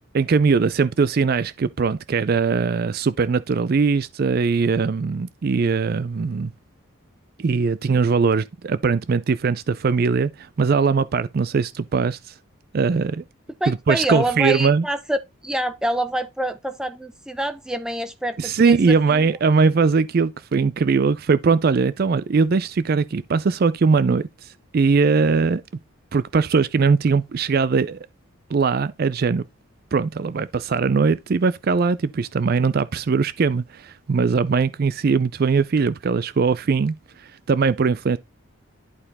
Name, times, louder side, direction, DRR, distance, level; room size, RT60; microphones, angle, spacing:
voice 1, 0.1-6.5 7.4-12.3 12.7-13.2 13.7-14.9 18.4-25.6 26.1-28.0 28.5-29.4 29.9-38.2, right 5 dB, 45° right, 0.4 m, -20 dB
voice 2, 13.6-19.3, right 1 dB, 5° right, 0.7 m, -26 dB
11.0 x 4.4 x 4.1 m
head